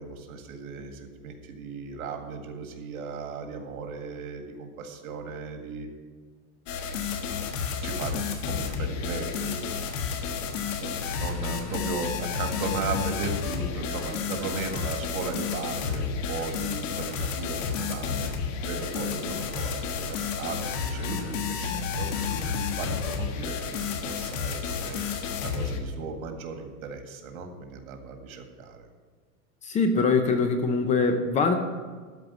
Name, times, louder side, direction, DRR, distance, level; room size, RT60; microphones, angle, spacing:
voice 1, 0.0-5.9 7.8-8.2 8.5-9.7 10.8-18.3 18.6-22.4 22.8-25.0 25.4-28.9, right 4 dB, 85° right, 4 dB, 1.9 m, -36 dB
sound 1, 6.7-25.8, left 6 dB, 65° left, 1.5 m, -31 dB
voice 2, 29.6-31.5, left 4 dB, 15° left, 7 dB, 0.6 m, -23 dB
13.0 x 4.6 x 8.1 m, 1.5 s
supercardioid pair, 150°, 41 cm